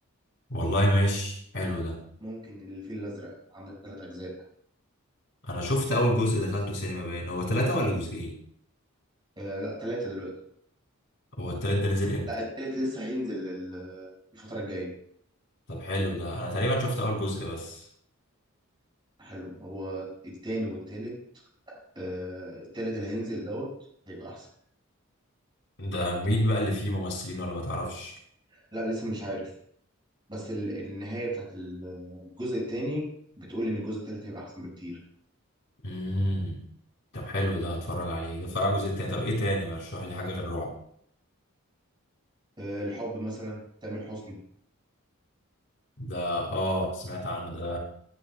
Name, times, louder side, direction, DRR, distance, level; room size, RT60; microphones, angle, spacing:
voice 1, 0.5-2.0 5.4-8.3 11.4-12.3 15.7-17.9 25.8-28.1 35.8-36.6 37.1-40.7 46.0-47.8, equal, 60° left, -2 dB, 4.1 m, -28 dB
voice 2, 2.2-4.3 9.4-10.3 12.3-14.9 19.2-21.2 21.7-23.7 24.1-24.5 28.5-29.5 30.3-33.1 33.4-35.0 42.6-44.4, equal, 20° right, -3 dB, 5.9 m, -35 dB
18.5 x 11.0 x 2.3 m, 0.65 s
head